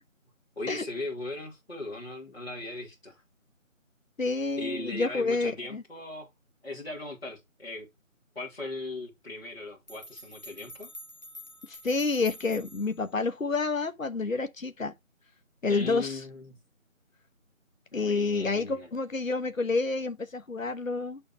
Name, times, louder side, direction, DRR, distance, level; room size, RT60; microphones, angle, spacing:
voice 1, 0.6-3.2 4.6-6.3 6.6-7.9 8.3-10.9 15.7-16.6 17.9-18.9, left 2 dB, 50° left, 2.9 m, -38 dB
voice 2, 4.2-5.8 11.7-14.9 15.6-16.2 17.9-21.2, left 3 dB, 70° left, 1.3 m, -29 dB
sound 1, 9.5-9.6 9.9-13.0, equal, 30° left, 1.4 m, -47 dB
6.8 x 6.8 x 3.1 m
figure-of-eight pair, 175°, 41 cm